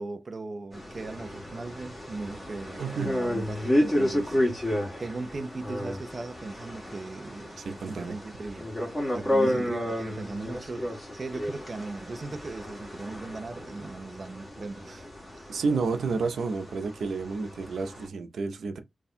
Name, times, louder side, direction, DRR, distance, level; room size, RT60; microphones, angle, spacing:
voice 1, 0.0-8.7 9.1-15.5, right 3 dB, 40° right, 0.5 m, -38 dB
sound 1, 0.7-18.1, left 1 dB, 15° left, 1.9 m, -32 dB
voice 2, 2.8-3.1 7.6-8.2 9.4-9.7 15.5-18.8, right 4 dB, 85° right, 0.7 m, -30 dB
3.4 x 2.3 x 4.2 m
wide cardioid pair, 125°, 0 cm